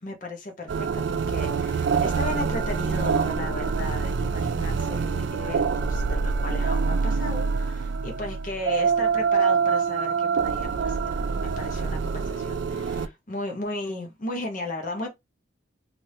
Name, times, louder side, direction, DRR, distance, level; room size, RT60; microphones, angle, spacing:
voice 1, 0.0-15.1, left 2 dB, 45° left, 0.8 m, -35 dB
sound 1, 0.7-13.1, right 5 dB, 70° right, 0.4 m, -25 dB
3.3 x 2.6 x 2.6 m
head